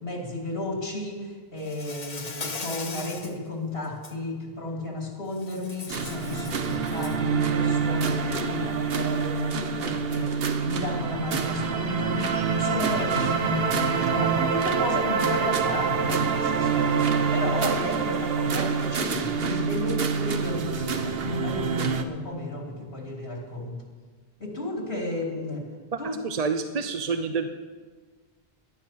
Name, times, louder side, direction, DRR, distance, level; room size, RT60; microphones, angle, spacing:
voice 1, 0.0-23.8 24.4-25.7 26.0-26.2, left 2 dB, 65° left, 0 dB, 3.0 m, -33 dB
Insect, 1.6-3.4 3.8-4.1 5.4-7.3, left 4 dB, 40° left, 1.1 m, -38 dB
sound 1, 5.9-22.0, right 6 dB, 70° right, 1.1 m, -26 dB
voice 2, 25.9-27.5, right 5 dB, 45° right, 8 dB, 0.7 m, -28 dB
17.5 x 12.0 x 5.8 m, 1.5 s
omnidirectional pair, 1.1 m